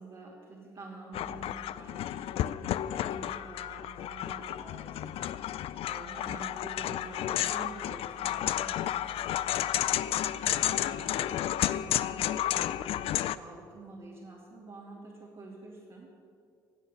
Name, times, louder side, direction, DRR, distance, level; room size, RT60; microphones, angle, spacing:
voice 1, 0.0-16.1, right 2 dB, 50° right, -7 dB, 2.9 m, -48 dB
sound 1, 1.1-13.4, left 12 dB, 60° left, 0.4 m, -32 dB
15.5 x 7.9 x 7.0 m, 2.4 s
hypercardioid pair, 55°, 11 cm